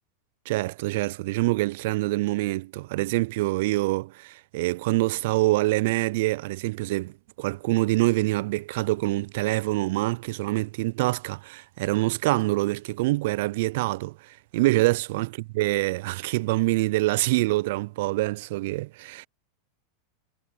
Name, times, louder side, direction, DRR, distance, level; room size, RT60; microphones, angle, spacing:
voice 1, 0.5-19.3, right 20 dB, 65° right, 0.3 m, -25 dB
hypercardioid pair, 105°, 0 cm